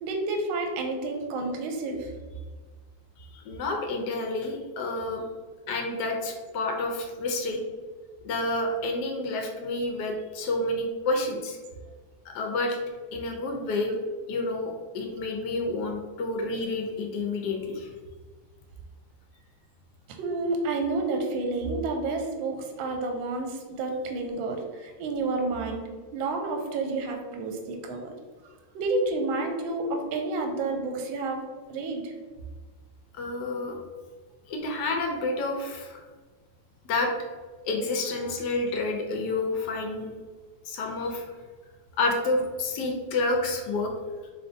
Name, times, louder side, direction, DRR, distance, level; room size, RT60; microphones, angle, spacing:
voice 1, 0.0-2.1 20.1-28.1 28.7-32.1, right 3 dB, 75° right, 3 dB, 1.3 m, -30 dB
voice 2, 3.2-5.2 5.7-7.6 8.2-11.6 12.3-12.8 13.1-13.9 14.3-17.9 33.1-33.8 34.5-36.0 36.8-37.1 37.6-40.1 40.7-41.2 42.0-43.9, left 2 dB, 80° left, 1 dB, 0.9 m, -29 dB
4.1 x 3.4 x 2.6 m, 1.5 s
omnidirectional pair, 2.4 m